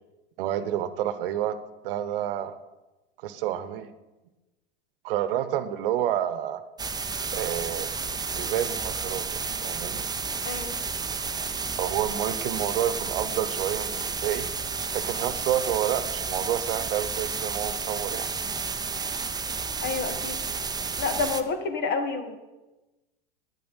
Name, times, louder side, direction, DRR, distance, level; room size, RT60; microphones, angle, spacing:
voice 1, 0.4-1.6 1.8-2.6 3.2-3.9 5.0-6.6 7.3-7.9 8.3-10.0 11.8-14.5 14.9-18.3, right 11 dB, 65° right, 12 dB, 1.1 m, -29 dB
sound 1, 6.8-21.4, right 5 dB, 15° right, 0.9 m, -31 dB
voice 2, 10.4-10.8 19.8-20.4 21.0-22.4, left 4 dB, 35° left, 7 dB, 2.0 m, -29 dB
10.5 x 8.7 x 9.0 m, 1.1 s
hypercardioid pair, 95°, 29 cm